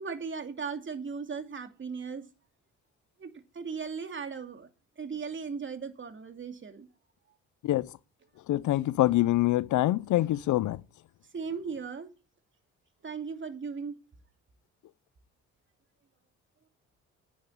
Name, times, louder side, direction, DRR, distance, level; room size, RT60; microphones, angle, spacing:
voice 1, 0.0-2.3 3.2-4.7 5.0-6.9 11.3-12.1 13.0-14.0, right 5 dB, 40° right, 2.8 m, -37 dB
voice 2, 8.5-10.8, left 15 dB, 75° left, 0.7 m, -25 dB
10.5 x 9.7 x 8.6 m
cardioid pair, 90°, 30 cm